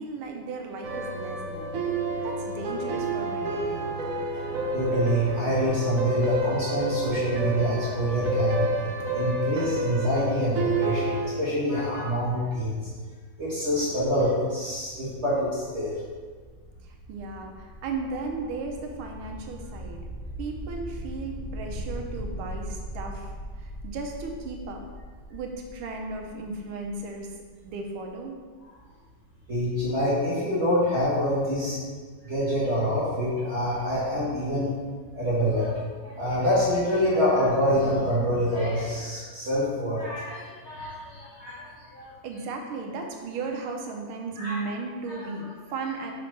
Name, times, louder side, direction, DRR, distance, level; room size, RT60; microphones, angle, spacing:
voice 1, 0.0-1.7 2.2-3.9 16.9-20.0 20.4-24.8 25.3-27.3 27.6-28.4 42.2-46.1, right 3 dB, 90° right, 2 dB, 1.6 m, -35 dB
sound 1, 0.8-11.2, right 2 dB, 70° right, 0.7 m, -29 dB
voice 2, 4.3-8.7 9.1-12.8 13.4-15.9 29.5-31.8 32.3-34.7 35.2-42.1 44.4-44.6 45.1-45.3, equal, 40° right, -9 dB, 1.3 m, -26 dB
sound 2, 14.8-28.3, equal, 60° left, 0.7 m, -40 dB
5.7 x 5.1 x 3.2 m, 1.5 s
omnidirectional pair, 2.3 m